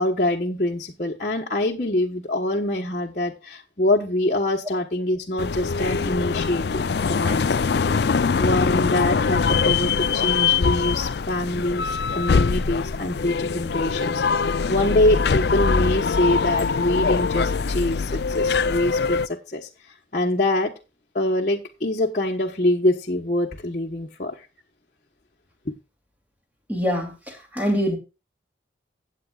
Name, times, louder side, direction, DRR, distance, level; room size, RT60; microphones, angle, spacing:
voice 1, 0.0-7.5 8.4-19.7 20.1-20.7 21.1-24.5 25.7-25.8, left 1 dB, 45° left, 1.2 m, -24 dB
sound 1, 5.4-19.3, left 5 dB, 60° left, 0.4 m, -23 dB
voice 2, 26.7-28.0, equal, 10° right, 2.7 m, -24 dB
16.0 x 8.5 x 2.4 m
head